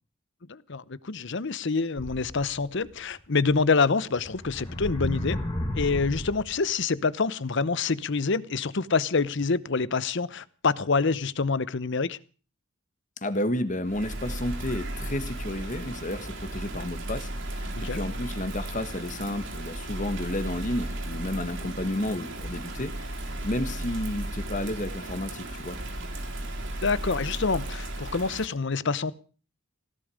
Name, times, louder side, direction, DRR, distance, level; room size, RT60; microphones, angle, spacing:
voice 1, 0.5-5.4 5.8-12.2 17.8-18.0 26.8-29.1, left 4 dB, 60° left, 19 dB, 0.8 m, -26 dB
sound 1, 2.0-2.9 3.5-3.6 4.2-6.6, left 1 dB, 20° left, 2.6 m, -33 dB
voice 2, 13.2-22.9 23.4-25.8, left 1 dB, 35° left, 11 dB, 1.7 m, -31 dB
Bird vocalization bird call bird song / Rain, 13.8-28.5, right 1 dB, 60° right, 3.7 m, -35 dB
17.5 x 12.0 x 6.4 m, 0.38 s
head